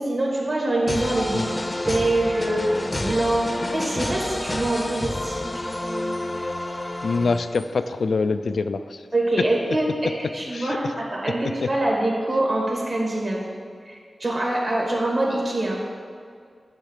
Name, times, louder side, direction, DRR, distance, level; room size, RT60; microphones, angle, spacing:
voice 1, 0.0-2.7 3.0-6.3 9.1-13.5 13.8-15.8, right 1 dB, 50° right, -3 dB, 2.2 m, -25 dB
sound 1, 0.9-7.8, left 1 dB, 25° left, 0.7 m, -29 dB
voice 2, 7.0-9.1 10.5-10.8 11.6-11.7, left 4 dB, 80° left, 9 dB, 0.3 m, -25 dB
9.9 x 3.6 x 6.6 m, 2.1 s
wide cardioid pair, 75°, 0 cm